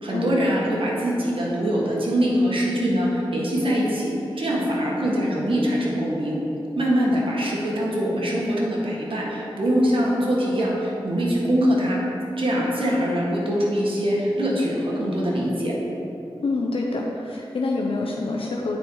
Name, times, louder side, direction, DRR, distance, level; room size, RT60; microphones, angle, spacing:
voice 1, 0.0-6.4 6.7-12.0 12.4-15.7, equal, 70° right, -4 dB, 1.6 m, -23 dB
voice 2, 16.4-18.8, left 3 dB, 75° left, -1 dB, 0.6 m, -26 dB
8.9 x 4.3 x 4.7 m, 2.9 s
cardioid pair, 45°, 9 cm